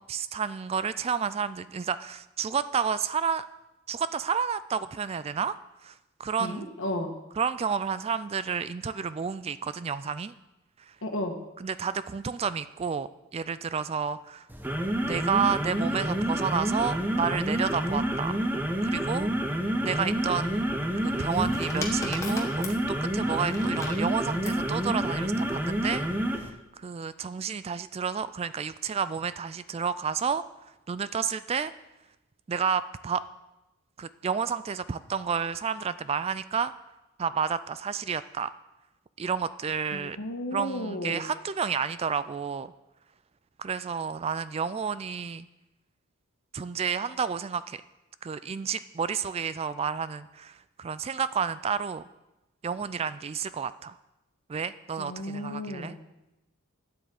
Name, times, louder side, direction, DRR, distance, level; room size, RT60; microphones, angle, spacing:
voice 1, 0.0-3.4 3.9-5.6 5.8-5.9 6.2-6.7 7.4-10.3 11.6-14.5 15.1-18.4 18.8-19.3 19.8-26.1 26.3-30.4 30.9-31.7 32.5-33.2 34.0-36.7 37.2-38.5 39.2-40.2 40.5-42.7 43.6-45.5 46.5-47.8 48.2-52.0 52.6-54.0 54.5-56.0, right 6 dB, 30° right, 15 dB, 0.3 m, -30 dB
voice 2, 6.4-7.1 11.0-11.4 39.9-41.2 55.0-56.0, left 1 dB, 60° left, 3 dB, 1.7 m, -33 dB
sound 1, 14.5-26.5, right 1 dB, 10° right, 0.9 m, -28 dB
sound 2, 21.0-24.6 25.7-26.1, left 2 dB, 15° left, 1.4 m, -38 dB
9.6 x 8.2 x 7.6 m, 0.98 s
head